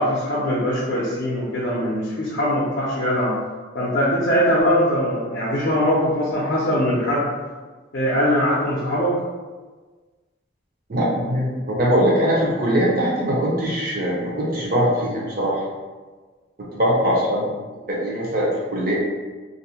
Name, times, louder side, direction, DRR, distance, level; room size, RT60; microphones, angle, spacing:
voice 1, 0.0-3.3 3.7-7.3 7.9-9.2, equal, 55° left, -7 dB, 0.5 m, -21 dB
voice 2, 10.9-15.6 16.6-17.5 17.9-18.9, equal, 45° right, -4 dB, 0.6 m, -21 dB
2.5 x 2.0 x 2.8 m, 1.4 s
head